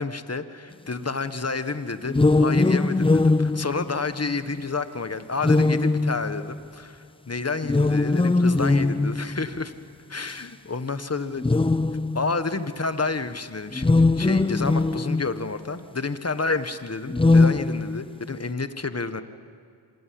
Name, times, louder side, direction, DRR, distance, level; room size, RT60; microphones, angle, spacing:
voice 1, 0.0-9.7 10.1-11.5 12.1-19.2, left 4 dB, 30° left, 11 dB, 1.6 m, -30 dB
sound 1, 2.1-4.5 5.4-6.7 7.6-9.5 10.3-10.4 11.4-12.4 13.7-15.5 17.1-18.3, left 3 dB, 10° left, 0.5 m, -21 dB
26.5 x 19.0 x 7.9 m, 2.5 s
cardioid pair, 40°, 47 cm